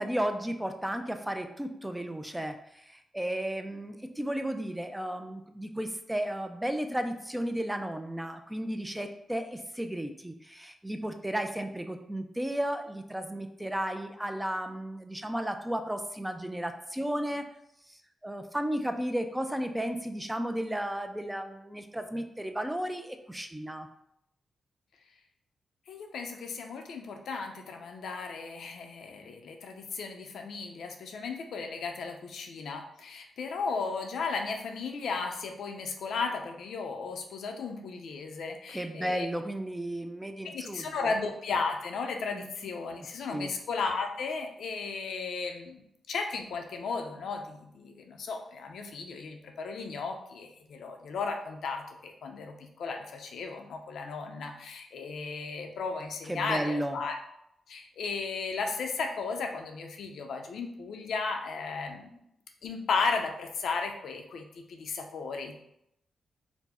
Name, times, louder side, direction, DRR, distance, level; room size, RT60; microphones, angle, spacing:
voice 1, 0.0-17.5 17.9-23.9 38.7-41.1 42.3-42.5 43.0-43.5 56.3-57.0, right 1 dB, 5° right, 6 dB, 0.3 m, -34 dB
voice 2, 25.9-39.3 40.4-57.1 57.7-62.1 62.6-65.5, left 4 dB, 80° left, 4 dB, 0.5 m, -35 dB
4.4 x 2.0 x 4.2 m, 0.78 s
wide cardioid pair, 120°, 0 cm